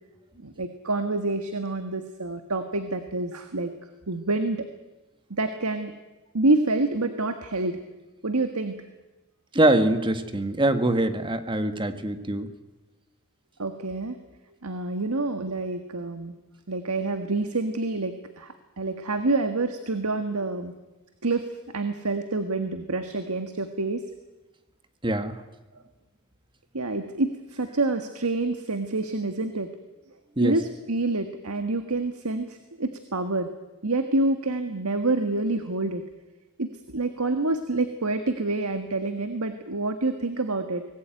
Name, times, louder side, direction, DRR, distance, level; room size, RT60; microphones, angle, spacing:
voice 1, 0.4-3.7 4.1-4.7 5.3-5.9 6.3-7.8 8.2-8.7 13.6-14.2 14.6-16.3 16.7-20.7 21.2-21.5 21.7-24.0 26.7-29.7 30.4-33.5 33.8-36.0 36.6-36.7 36.9-40.8, right 2 dB, 85° right, 8 dB, 1.7 m, -27 dB
voice 2, 9.5-12.5 25.0-25.3 30.4-30.5, right 1 dB, 20° right, 9 dB, 1.6 m, -23 dB
24.5 x 19.5 x 9.1 m, 1.1 s
head